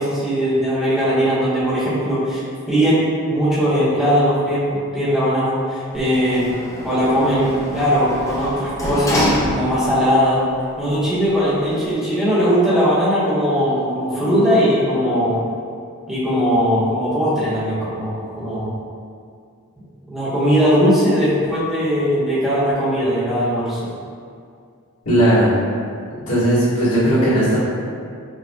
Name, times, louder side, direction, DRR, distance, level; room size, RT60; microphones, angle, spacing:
voice 1, 0.0-6.5 6.8-9.2 9.5-10.4 10.8-15.4 16.1-18.7 20.1-23.9, equal, ahead, -12 dB, 0.9 m, -19 dB
Sliding door, 5.9-10.1 10.5-10.6, equal, 15° left, 0.4 m, -26 dB
voice 2, 25.0-25.5 26.1-27.6, right 1 dB, 90° left, -10 dB, 1.2 m, -16 dB
5.0 x 2.1 x 2.2 m, 2.3 s
head